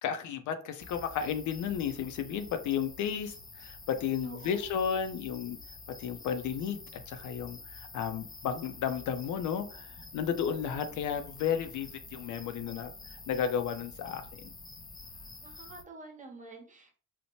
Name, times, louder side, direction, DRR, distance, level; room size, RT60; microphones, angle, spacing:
voice 1, 0.0-5.6 5.9-14.5, left 8 dB, 75° left, 9 dB, 0.5 m, -33 dB
sound 1, 0.8-15.8, left 3 dB, 15° left, 0.3 m, -48 dB
voice 2, 4.2-4.8 15.4-17.0, right 4 dB, 25° right, 2 dB, 0.9 m, -48 dB
2.8 x 2.1 x 2.9 m, 0.39 s
cardioid pair, 90°, 30 cm